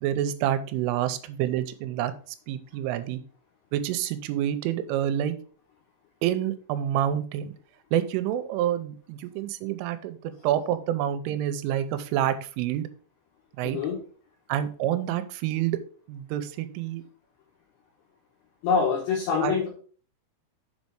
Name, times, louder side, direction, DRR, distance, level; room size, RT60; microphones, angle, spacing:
voice 1, 0.0-2.1 2.5-3.2 3.7-5.3 6.2-7.5 7.9-12.9 13.6-13.8 14.5-15.8 16.1-17.0 19.4-19.5, right 11 dB, 85° right, 11 dB, 3.2 m, -28 dB
voice 2, 13.6-14.0 18.6-19.7, left 5 dB, 70° left, -2 dB, 3.0 m, -25 dB
6.8 x 5.4 x 4.6 m, 0.43 s
omnidirectional pair, 5.6 m